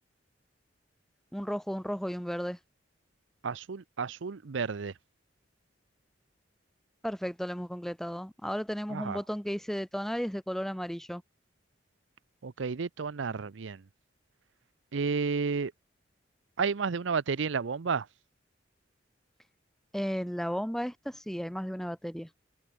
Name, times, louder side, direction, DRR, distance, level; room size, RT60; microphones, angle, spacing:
voice 1, 1.3-2.6 7.0-11.2 19.9-22.3, equal, ahead, 0.8 m, -34 dB
voice 2, 3.4-4.9 8.9-9.2 12.4-13.8 14.9-15.7 16.6-18.1, right 5 dB, 85° right, 0.6 m, -31 dB
head